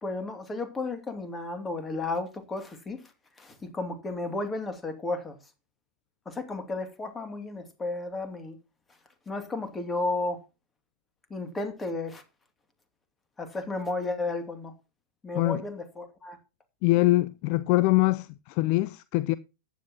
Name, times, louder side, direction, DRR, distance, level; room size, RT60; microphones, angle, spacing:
voice 1, 0.0-3.0 3.4-5.4 6.3-8.6 9.3-10.4 11.3-12.2 13.4-14.7 15.2-16.4, left 3 dB, 15° left, 2.6 m, -33 dB
voice 2, 16.8-19.3, left 19 dB, 45° left, 0.5 m, -23 dB
14.5 x 10.5 x 2.9 m
figure-of-eight pair, 90°, 0 cm